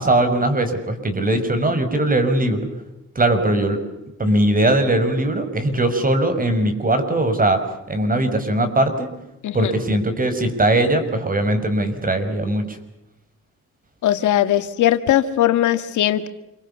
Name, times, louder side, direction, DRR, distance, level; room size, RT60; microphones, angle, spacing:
voice 1, 0.0-2.7 3.1-3.8 4.2-7.6 7.9-9.1 9.5-12.8, right 1 dB, 30° right, 8 dB, 5.8 m, -20 dB
voice 2, 14.0-16.3, left 12 dB, 75° left, 9 dB, 1.9 m, -19 dB
28.0 x 24.0 x 7.0 m, 0.90 s
cardioid pair, 90°, 30 cm